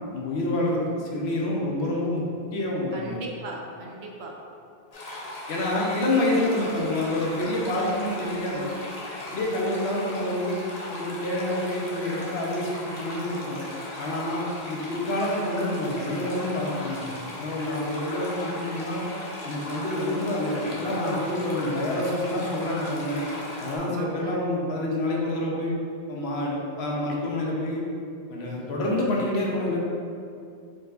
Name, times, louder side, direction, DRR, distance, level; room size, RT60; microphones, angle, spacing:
voice 1, 0.1-2.2 2.5-3.0 5.5-8.7 9.3-10.6 10.9-13.6 14.0-17.1 17.4-19.0 19.4-23.3 23.6-25.8 26.1-27.8 28.3-29.8, left 1 dB, 85° left, -3 dB, 1.0 m, -27 dB
voice 2, 2.9-4.4 5.5-5.7 23.7-24.4, right 2 dB, 90° right, 0 dB, 0.9 m, -38 dB
sound 1, 4.9-23.8, left 1 dB, 45° left, 0.8 m, -38 dB
4.5 x 4.5 x 2.5 m, 2.4 s
omnidirectional pair, 1.1 m